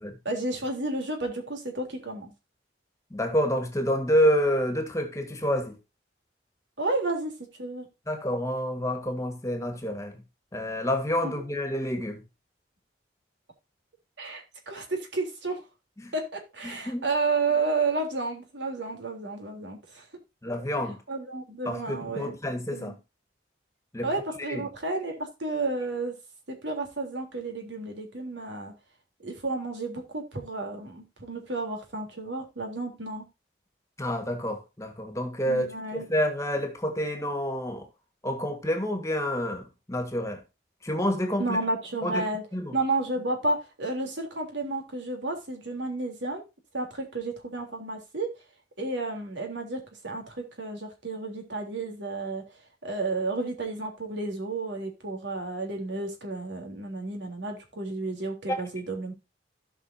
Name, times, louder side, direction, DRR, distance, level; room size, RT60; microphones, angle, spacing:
voice 1, 0.3-2.3 6.8-7.3 7.6-7.8 11.2-11.3 14.2-15.6 16.1-20.1 21.1-22.3 22.7-23.0 24.0-26.1 26.5-28.7 29.2-33.2 35.5-36.0 41.4-42.4 42.7-46.4 46.7-48.3 48.8-52.4 52.8-59.1, right 3 dB, 80° right, 3.6 m, -31 dB
voice 2, 3.1-5.8 8.1-10.2 10.5-12.2 16.0-16.1 16.6-17.1 20.4-21.0 21.6-23.0 23.9-24.1 24.5-24.6 34.0-37.9 38.2-40.4 40.8-41.6 42.0-42.8 58.5-58.6, equal, 15° left, 1.7 m, -28 dB
16.5 x 5.9 x 2.8 m
head